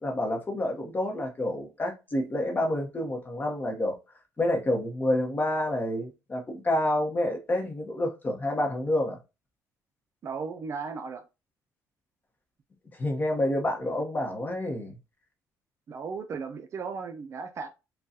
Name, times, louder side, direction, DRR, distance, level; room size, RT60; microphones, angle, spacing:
voice 1, 0.0-3.9 4.4-9.2 13.0-15.0, left 1 dB, 25° left, 0.9 m, -28 dB
voice 2, 10.2-11.2 15.9-17.7, right 5 dB, 45° right, 0.4 m, -36 dB
3.8 x 2.3 x 2.7 m
cardioid pair, 110°, 7 cm